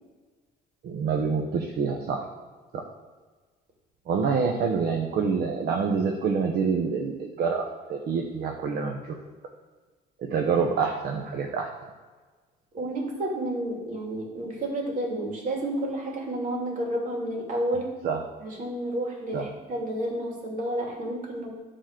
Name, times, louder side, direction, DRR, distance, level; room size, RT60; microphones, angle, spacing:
voice 1, 0.8-2.2 2.7-2.8 4.1-9.0 10.2-11.7 18.0-18.2 19.3-19.5, right 5 dB, 65° right, 2 dB, 1.1 m, -26 dB
voice 2, 12.7-17.9 18.4-21.5, right 1 dB, 50° right, -1 dB, 2.9 m, -30 dB
11.5 x 4.2 x 6.7 m, 1.3 s
cardioid pair, 110°, 17 cm